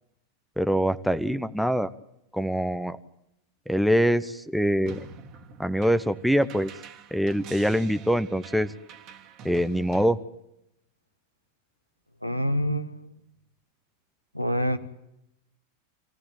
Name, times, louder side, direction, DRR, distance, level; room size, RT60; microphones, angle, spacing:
voice 1, 0.6-1.9 2.3-3.0 3.7-5.1 5.6-6.7 7.1-8.7 9.4-10.2, equal, ahead, 10 dB, 0.9 m, -24 dB
sound 1, 4.9-10.1, right 5 dB, 35° right, 2.0 m, -46 dB
voice 2, 12.2-13.1 14.3-14.8, equal, 90° left, 10 dB, 1.5 m, -26 dB
28.0 x 16.5 x 8.9 m, 0.84 s
figure-of-eight pair, 90°, 0 cm